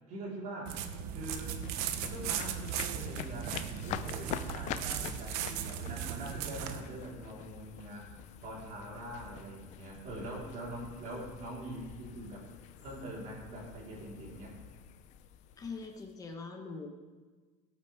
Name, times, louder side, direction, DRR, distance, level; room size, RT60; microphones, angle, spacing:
voice 1, 0.1-0.8 1.1-1.6 2.1-8.1 8.4-12.5 12.8-14.6, right 1 dB, 45° right, -5 dB, 4.1 m, -43 dB
sound 1, 0.7-6.8, right 9 dB, 65° right, 0.9 m, -37 dB
sound 2, 1.2-16.3, left 11 dB, 45° left, 0.5 m, -46 dB
voice 2, 15.6-16.9, left 4 dB, 20° left, 3 dB, 1.2 m, -42 dB
17.5 x 8.7 x 3.6 m, 1.4 s
cardioid pair, 160°, 17 cm